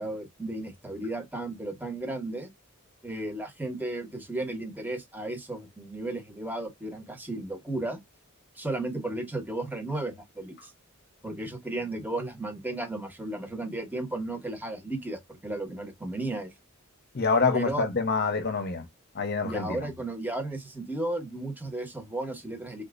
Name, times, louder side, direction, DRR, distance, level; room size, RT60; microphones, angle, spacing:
voice 1, 0.0-2.5 3.0-8.0 8.6-10.7 11.2-16.5 17.5-17.8 19.4-22.8, right 2 dB, 10° right, 1.0 m, -34 dB
voice 2, 17.1-18.8 19.1-19.8, left 4 dB, 45° left, 0.8 m, -26 dB
3.6 x 2.7 x 2.5 m
head